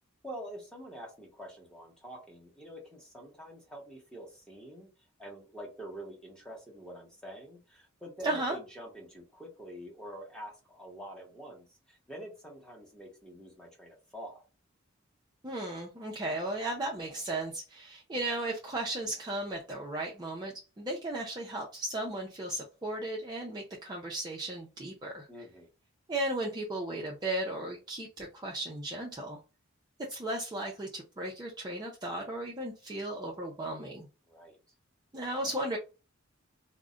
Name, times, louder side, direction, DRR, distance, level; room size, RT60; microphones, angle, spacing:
voice 1, 0.2-4.9 5.2-14.4 25.3-25.7 34.3-34.6, right 1 dB, 5° left, -2 dB, 0.9 m, -46 dB
voice 2, 8.2-8.6 15.4-25.3 26.1-29.4 30.0-34.1 35.1-35.8, right 1 dB, 20° right, -2 dB, 0.5 m, -35 dB
2.4 x 2.1 x 3.6 m, 0.31 s
head